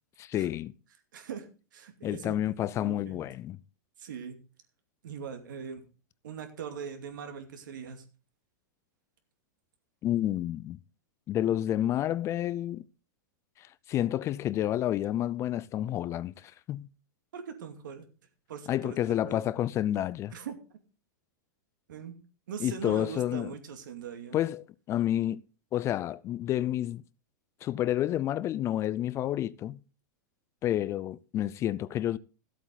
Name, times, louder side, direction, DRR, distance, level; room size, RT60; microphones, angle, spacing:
voice 1, 0.2-0.7 2.0-3.6 10.0-10.8 11.3-12.8 13.6-16.9 18.7-20.3 22.6-23.5 24.3-25.4 25.7-27.0 27.6-29.8 30.6-32.2, left 12 dB, 25° left, 0.4 m, -30 dB
voice 2, 1.1-1.5 1.7-3.2 4.0-4.4 5.0-5.9 6.2-8.0 17.3-18.1 18.5-19.0 19.3-19.4 20.3-20.6 21.9-22.1 22.5-24.4, right 7 dB, 80° right, 2.5 m, -41 dB
14.0 x 8.1 x 4.0 m
hypercardioid pair, 135°, 10 cm